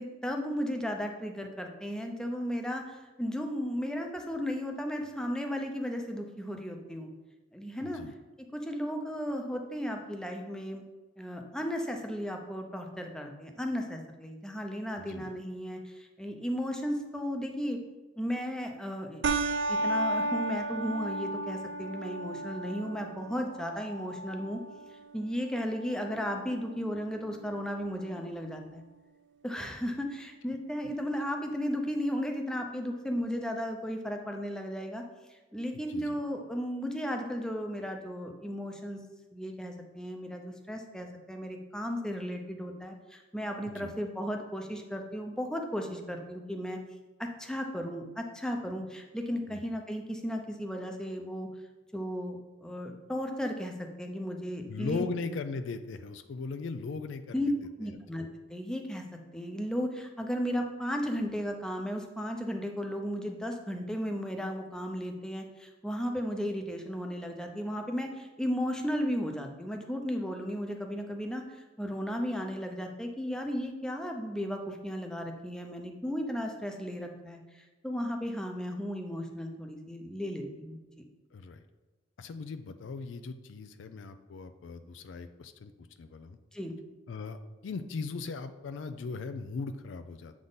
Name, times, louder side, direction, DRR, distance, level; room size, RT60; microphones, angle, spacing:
voice 1, 0.0-7.1 7.5-8.0 8.5-10.8 11.2-17.8 18.2-19.2 19.7-24.6 25.1-28.8 29.4-35.0 35.5-39.0 39.3-46.8 47.2-51.5 51.9-53.7 54.0-55.1 57.3-57.5 57.8-59.0 59.3-71.4 71.8-80.8 86.5-86.7, equal, 5° left, 3 dB, 0.6 m, -35 dB
voice 2, 7.8-8.1 15.0-15.3 35.7-36.2 43.7-43.9 49.5-49.6 54.7-57.5 58.1-58.2 81.3-81.6 82.2-85.7 86.0-86.4 87.1-90.3, left 4 dB, 85° left, 10 dB, 0.4 m, -38 dB
sound 1, 19.2-28.2, right 2 dB, 75° right, 0.4 m, -35 dB
7.6 x 3.6 x 4.0 m, 1.2 s
head